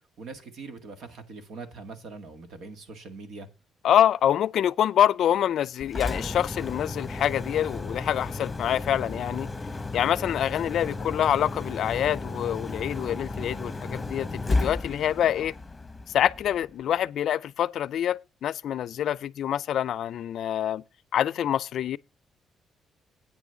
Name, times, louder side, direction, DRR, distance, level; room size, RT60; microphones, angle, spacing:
voice 1, 0.2-3.5, right 4 dB, 75° right, 1.9 m, -42 dB
voice 2, 3.8-9.5 9.9-15.5 16.1-20.8 21.1-22.0, left 10 dB, 70° left, 0.4 m, -26 dB
Engine, 5.8-16.7, left 2 dB, 15° left, 0.9 m, -33 dB
8.9 x 6.1 x 6.9 m
cardioid pair, 90°, 0 cm